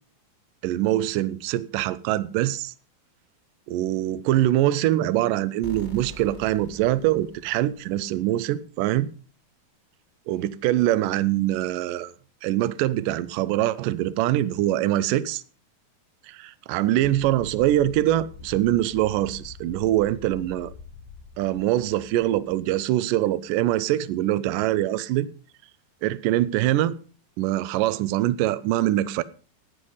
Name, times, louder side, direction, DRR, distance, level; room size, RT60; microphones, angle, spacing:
voice 1, 0.6-2.7 3.7-9.1 10.3-12.1 12.4-15.4 16.3-20.7 21.4-25.3 26.0-27.0 27.4-29.2, right 14 dB, 75° right, 2.2 m, -23 dB
sound 1, 5.6-8.3, left 1 dB, 25° left, 1.1 m, -44 dB
sound 2, 17.0-23.1, left 5 dB, 75° left, 2.4 m, -45 dB
14.0 x 9.8 x 5.5 m
omnidirectional pair, 4.3 m